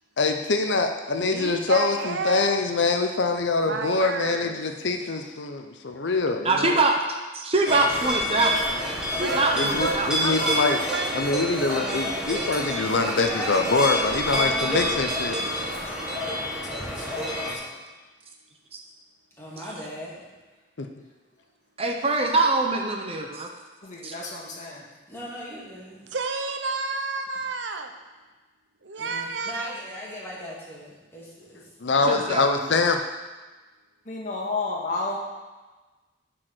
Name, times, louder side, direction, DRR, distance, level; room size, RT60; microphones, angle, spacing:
voice 1, 0.2-6.7 9.5-10.8 11.1-15.6 20.8-20.9 31.8-33.0, left 3 dB, 75° left, 5 dB, 0.7 m, -24 dB
voice 2, 1.2-2.7 3.6-4.6 9.1-11.3 26.1-27.9 28.8-29.8, right 3 dB, 75° right, 5 dB, 0.9 m, -31 dB
voice 3, 6.4-7.0 7.3-8.6 9.2-10.1 21.8-23.5 24.0-24.1 32.1-32.6, right 2 dB, 35° right, 2 dB, 0.9 m, -23 dB
sound 1, 7.7-17.5, equal, 5° right, 1.6 m, -28 dB
voice 4, 11.7-12.2 12.8-13.8 14.3-14.9 15.5-15.8 19.4-20.4 25.1-26.1 29.0-32.0, equal, 15° left, -6 dB, 2.4 m, -38 dB
voice 5, 16.7-17.7 23.8-24.8 34.1-35.2, left 3 dB, 45° left, -3 dB, 1.8 m, -32 dB
10.0 x 4.8 x 6.2 m, 1.3 s
head